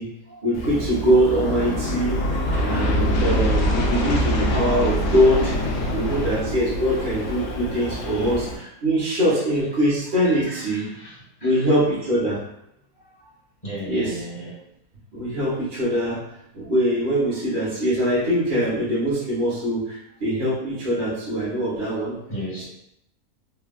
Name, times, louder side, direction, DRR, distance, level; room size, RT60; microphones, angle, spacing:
voice 1, 0.0-2.3 2.6-5.6 5.9-10.9 11.4-12.4 13.8-14.2 15.1-16.3 16.5-22.2 22.6-22.7, equal, 40° right, -10 dB, 1.0 m, -23 dB
Aircraft, 0.5-8.5, equal, 65° left, 0.9 m, -24 dB
voice 2, 10.2-11.1 11.4-11.7 13.6-14.6 22.3-22.6, right 1 dB, 30° left, -9 dB, 1.4 m, -35 dB
3.2 x 2.4 x 2.3 m, 0.79 s
omnidirectional pair, 1.6 m